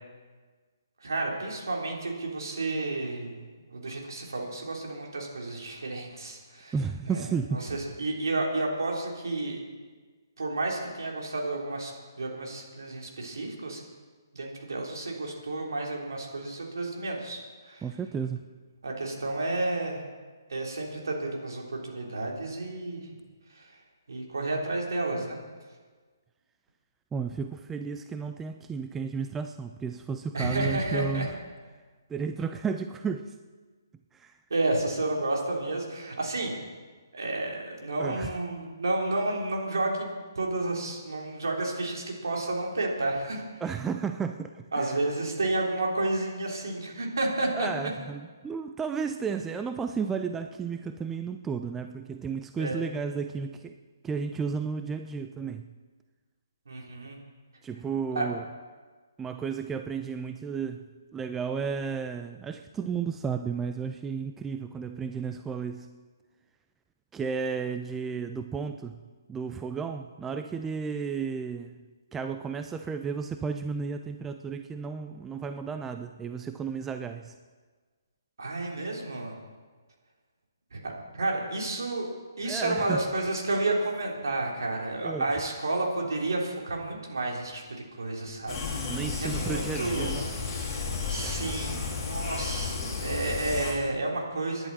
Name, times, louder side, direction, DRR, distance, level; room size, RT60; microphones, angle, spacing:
voice 1, 1.0-6.7 7.1-7.2 7.5-9.6 10.4-13.8 14.3-17.8 18.8-20.0 20.5-23.1 23.5-23.8 24.1-25.4 30.3-31.3 34.5-36.5 37.1-40.1 40.4-43.6 44.7-47.9 52.6-52.9 56.7-57.2 58.1-58.3 78.4-79.3 80.7-82.1 82.4-90.1 91.1-94.7, right 2 dB, 65° right, -1 dB, 3.7 m, -31 dB
voice 2, 6.7-7.6 17.8-18.4 27.1-31.3 32.1-33.3 34.1-34.3 38.0-38.4 43.6-44.9 47.5-53.8 54.0-55.7 57.6-58.4 59.2-60.9 61.1-65.9 67.1-69.0 69.3-71.7 72.1-77.3 82.4-83.0 85.0-85.4 88.9-90.3, right 5 dB, 10° right, 7 dB, 0.4 m, -33 dB
sound 1, 88.5-93.7, left 4 dB, 20° left, 3.5 m, -32 dB
23.5 x 10.5 x 4.3 m, 1.4 s
figure-of-eight pair, 140°, 2 cm